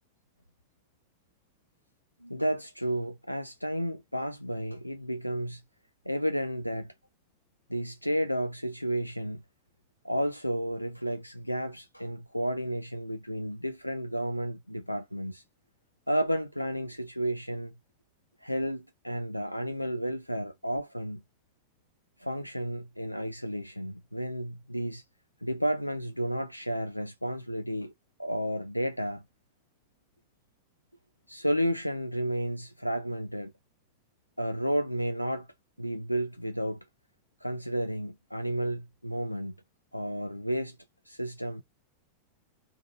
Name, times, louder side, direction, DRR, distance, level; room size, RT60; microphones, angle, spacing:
voice 1, 2.2-5.6 6.1-6.9 7.7-9.4 10.0-15.4 16.1-17.7 18.4-21.2 22.2-25.0 25.4-27.9 28.2-29.2 31.3-33.5 34.4-35.5 35.8-36.8 37.4-39.5 39.9-40.8 41.1-41.6, equal, 90° left, 0.3 m, -32 dB
3.9 x 2.9 x 2.7 m
figure-of-eight pair, 90°, 0 cm